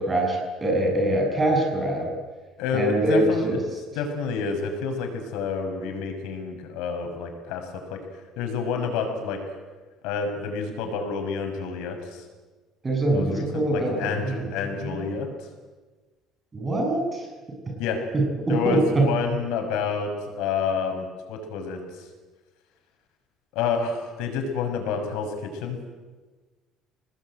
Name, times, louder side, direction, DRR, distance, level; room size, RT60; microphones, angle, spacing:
voice 1, 0.0-2.1 2.7-3.6 12.8-14.4 14.8-15.1 16.5-17.3 18.1-19.1, right 2 dB, 15° right, 1 dB, 7.5 m, -24 dB
voice 2, 2.6-3.6 3.9-8.0 8.4-9.4 10.0-12.2 13.1-15.3 17.8-18.0 18.5-22.1 23.5-25.8, left 5 dB, 85° left, 4 dB, 6.4 m, -29 dB
29.0 x 20.0 x 9.3 m, 1.3 s
cardioid pair, 160°, 0 cm